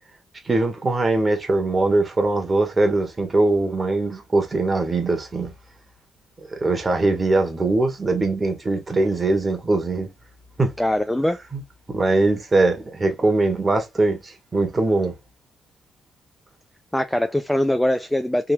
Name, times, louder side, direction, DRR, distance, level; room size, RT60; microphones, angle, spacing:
voice 1, 0.4-5.5 6.5-10.1 10.6-10.7 11.5-11.6 11.9-15.1, right 2 dB, 30° right, 1.5 m, -21 dB
voice 2, 10.8-11.4 16.9-18.5, left 1 dB, 5° left, 0.4 m, -22 dB
3.7 x 2.7 x 2.6 m
cardioid pair, 90°, 0 cm